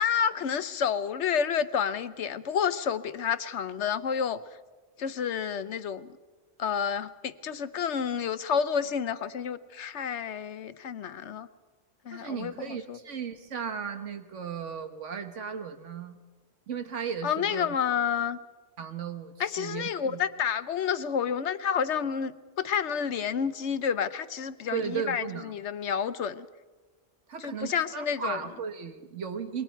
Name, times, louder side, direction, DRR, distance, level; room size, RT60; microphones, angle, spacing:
voice 1, 0.0-4.4 5.0-6.1 6.6-11.5 12.0-13.0 17.2-18.4 19.4-26.5 27.4-28.4, left 7 dB, 70° left, 13 dB, 1.1 m, -29 dB
voice 2, 12.1-16.2 16.7-17.7 18.8-20.2 24.7-25.5 27.3-29.6, right 7 dB, 80° right, 7 dB, 1.7 m, -36 dB
27.5 x 22.5 x 4.6 m, 1.3 s
omnidirectional pair, 1.2 m